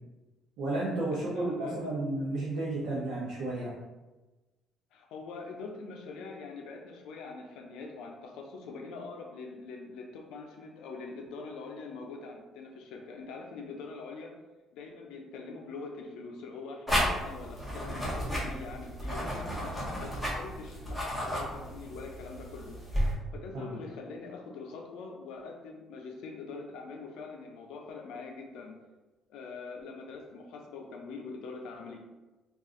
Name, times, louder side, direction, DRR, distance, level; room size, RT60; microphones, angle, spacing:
voice 1, 0.6-3.7 23.5-23.8, right 2 dB, 85° right, -5 dB, 0.6 m, -32 dB
voice 2, 1.1-1.9 4.9-14.3 14.7-22.8 23.3-28.7 29.3-32.0, left 4 dB, 85° left, 2 dB, 0.5 m, -43 dB
sound 1, 16.9-23.1, equal, 5° right, 0.7 m, -33 dB
2.5 x 2.4 x 3.6 m, 1.1 s
cardioid pair, 165°, 0 cm